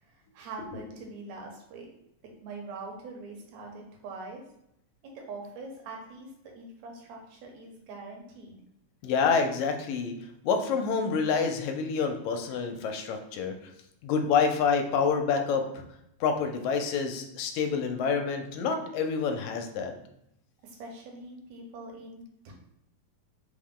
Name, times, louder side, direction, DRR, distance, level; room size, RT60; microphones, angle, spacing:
voice 1, 0.0-1.9 2.4-4.4 5.0-8.6 20.6-22.5, right 3 dB, 75° right, 1 dB, 2.1 m, -43 dB
voice 2, 9.0-10.2 10.4-13.5 14.0-15.8 16.2-19.9, left 5 dB, 80° left, 5 dB, 1.9 m, -27 dB
4.8 x 2.1 x 3.6 m, 0.78 s
omnidirectional pair, 3.3 m